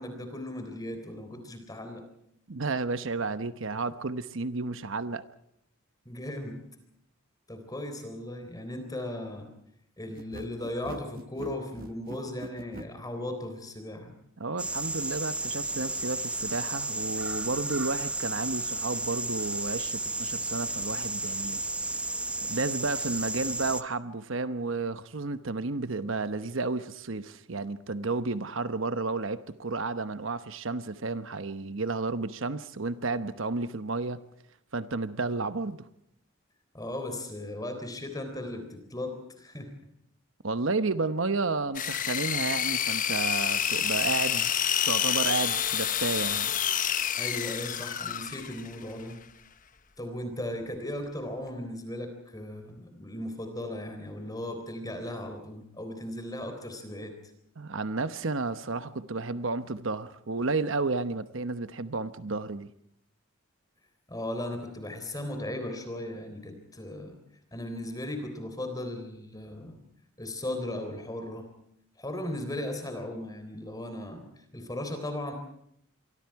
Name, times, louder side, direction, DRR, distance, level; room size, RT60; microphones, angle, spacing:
voice 1, 0.0-2.0 6.1-6.6 7.5-9.5 10.0-14.1 36.7-39.7 47.2-49.2 50.0-57.1 64.1-67.2 67.5-69.8 70.2-71.5 72.0-75.3, left 1 dB, 20° left, 6 dB, 3.7 m, -37 dB
voice 2, 2.5-5.2 14.4-21.6 22.4-34.2 34.7-35.9 40.4-44.5 44.8-46.5 57.6-62.7, right 3 dB, 65° right, 12 dB, 1.0 m, -32 dB
sound 1, 10.1-12.9, right 1 dB, 45° right, 1.0 m, -43 dB
sound 2, 14.6-23.8, right 2 dB, 5° right, 0.9 m, -33 dB
sound 3, 41.7-48.7, left 9 dB, 40° left, 1.0 m, -28 dB
27.5 x 24.0 x 4.8 m, 0.72 s
head